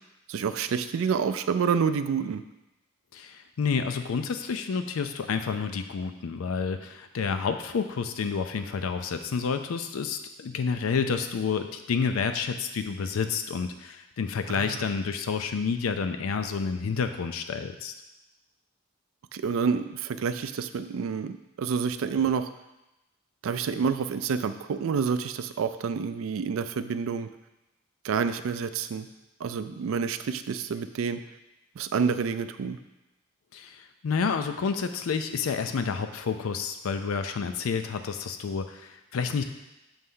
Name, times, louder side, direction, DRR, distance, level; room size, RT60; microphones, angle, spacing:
voice 1, 0.3-2.4 14.5-14.9 19.3-22.5 23.4-27.3 28.0-29.1 29.4-31.2 31.8-32.8, right 6 dB, 75° right, 11 dB, 0.3 m, -28 dB
voice 2, 3.1-17.9 33.5-39.4, left 5 dB, 80° left, 8 dB, 0.4 m, -29 dB
7.1 x 3.3 x 5.5 m, 0.96 s
head